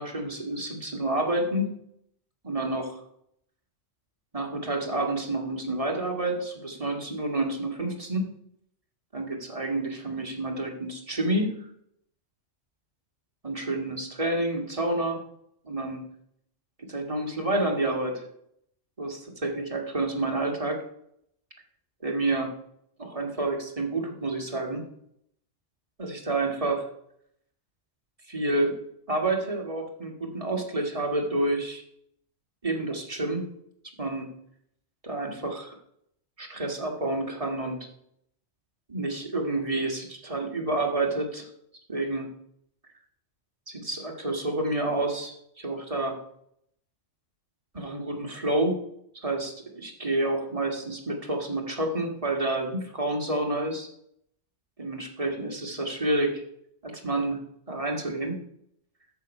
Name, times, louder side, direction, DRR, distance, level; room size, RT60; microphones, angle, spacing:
voice 1, 0.0-1.7 2.4-3.0 4.3-8.2 9.1-11.6 13.4-15.2 15.6-16.0 16.8-18.3 19.0-20.8 22.0-22.5 23.0-24.8 26.0-26.9 28.3-28.8 29.1-31.8 32.6-33.5 34.0-34.3 35.0-35.7 36.4-37.8 38.9-41.5 41.9-42.3 43.7-46.2 47.7-48.8 49.2-53.9 54.8-56.4 56.8-57.4 57.7-58.4, right 2 dB, 30° right, 1 dB, 1.7 m, -29 dB
8.0 x 7.2 x 5.3 m, 0.71 s
omnidirectional pair, 1.3 m